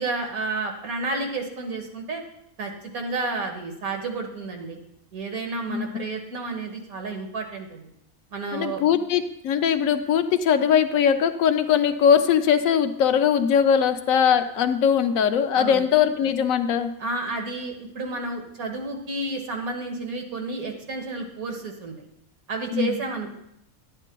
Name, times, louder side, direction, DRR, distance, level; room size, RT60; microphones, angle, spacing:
voice 1, 0.0-2.2 2.6-4.8 5.1-7.9 8.3-8.8 15.6-15.9 17.0-22.1 22.5-23.4, right 3 dB, 80° right, 2 dB, 1.8 m, -31 dB
voice 2, 8.5-16.9 22.7-23.0, left 8 dB, 75° left, 9 dB, 1.0 m, -21 dB
11.5 x 9.7 x 2.2 m, 0.75 s
omnidirectional pair, 1.5 m